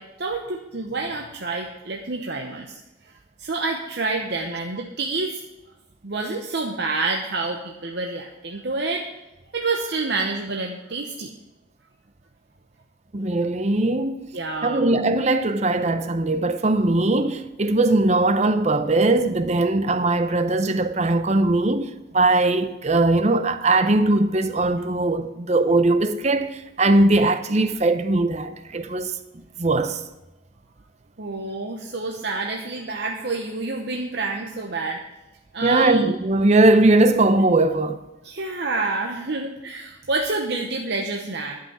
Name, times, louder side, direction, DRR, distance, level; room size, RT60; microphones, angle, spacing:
voice 1, 0.0-2.8 3.4-5.4 6.0-9.1 9.5-11.3 14.3-14.9 31.2-35.0 35.5-36.0 38.2-41.6, right 3 dB, 55° right, 0.9 m, -28 dB
voice 2, 13.1-14.3 14.6-30.1 35.6-38.0, right 2 dB, 35° right, 0.6 m, -20 dB
11.5 x 5.7 x 7.3 m
head